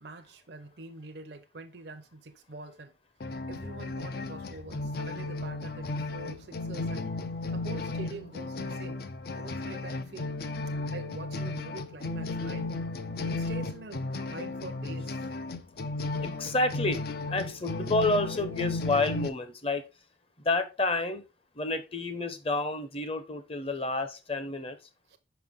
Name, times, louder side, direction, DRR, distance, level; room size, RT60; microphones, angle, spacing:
voice 1, 0.0-2.9 3.5-7.1 7.5-9.0 9.3-10.4 10.7-12.7 13.3-15.2 25.1-25.2, right 3 dB, 60° right, 0.7 m, -45 dB
sound 1, 3.2-19.3, left 2 dB, 55° left, 0.5 m, -34 dB
voice 2, 16.2-19.8 20.4-21.2 21.6-24.8, left 2 dB, 30° left, 0.8 m, -29 dB
5.8 x 5.6 x 3.6 m
head